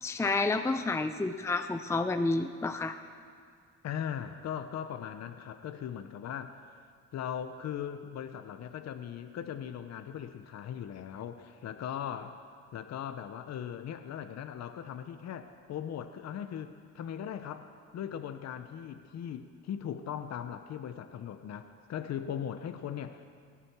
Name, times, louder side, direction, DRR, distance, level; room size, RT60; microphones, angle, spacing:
voice 1, 0.0-3.0, left 3 dB, 10° left, 8 dB, 0.6 m, -30 dB
voice 2, 3.8-6.6 7.1-12.4 12.7-23.2, left 9 dB, 60° left, 8 dB, 0.8 m, -39 dB
17.5 x 10.0 x 7.3 m, 2.1 s
cardioid pair, 90°, 30 cm